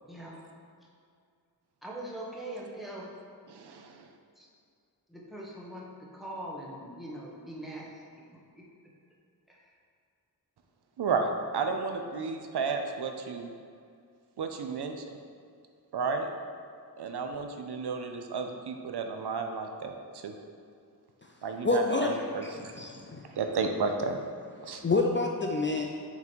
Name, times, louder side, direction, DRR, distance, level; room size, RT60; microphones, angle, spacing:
voice 1, 0.0-0.4 1.8-3.1 4.3-4.5 5.1-8.7 9.5-9.7, right 1 dB, ahead, -4 dB, 1.1 m, -42 dB
voice 2, 3.5-4.1 11.0-13.5 14.4-14.9 15.9-16.3 17.0-20.3 21.4-22.7 23.4-24.2 24.6-24.8, right 4 dB, 80° right, 5 dB, 0.6 m, -32 dB
voice 3, 21.6-23.3 24.8-25.8, left 3 dB, 30° left, 1 dB, 0.4 m, -28 dB
5.8 x 3.8 x 4.5 m, 2.3 s
wide cardioid pair, 85°, 39 cm